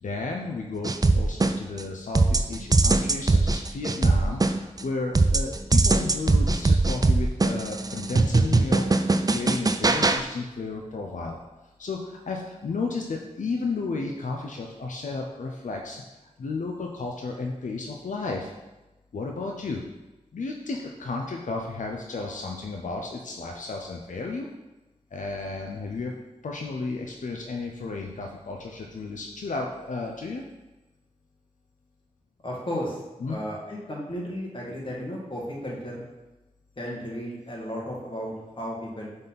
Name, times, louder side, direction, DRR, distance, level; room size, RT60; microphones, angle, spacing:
voice 1, 0.0-8.9 9.3-11.4 11.8-16.0 16.4-18.5 19.1-19.8 20.3-24.5 25.1-26.1 26.4-30.4 33.2-33.3, left 3 dB, 90° left, 1 dB, 0.6 m, -33 dB
sound 1, 0.8-1.8 2.1-4.8 5.1-10.2, right 3 dB, 30° right, 0.4 m, -21 dB
voice 2, 32.4-33.0 33.3-36.1 36.8-39.2, equal, 40° left, -4 dB, 1.9 m, -34 dB
5.3 x 4.0 x 5.8 m, 1.1 s
wide cardioid pair, 60°, 13 cm